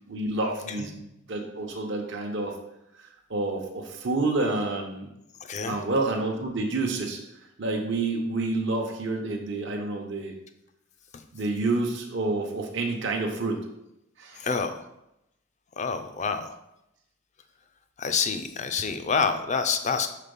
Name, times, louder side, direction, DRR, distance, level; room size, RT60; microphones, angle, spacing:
voice 1, 0.1-2.6 2.9-5.1 5.6-10.3 11.3-13.6 14.2-14.5, right 2 dB, 60° right, 1 dB, 0.8 m, -29 dB
voice 2, 14.4-14.8 15.8-16.5 18.0-20.1, left 5 dB, 35° left, 8 dB, 0.5 m, -27 dB
5.7 x 3.9 x 5.2 m, 0.86 s
head